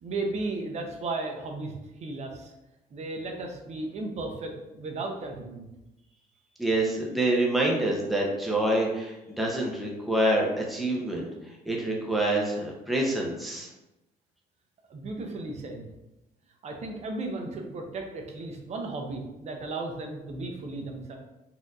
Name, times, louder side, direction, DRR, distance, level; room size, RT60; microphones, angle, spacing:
voice 1, 0.0-2.5 2.9-5.7 14.9-15.9 16.6-21.2, right 2 dB, 40° right, 3 dB, 0.7 m, -35 dB
voice 2, 6.6-11.3 11.7-13.7, right 1 dB, ahead, -2 dB, 0.6 m, -26 dB
4.2 x 2.6 x 2.4 m, 0.93 s
cardioid pair, 110°, 17 cm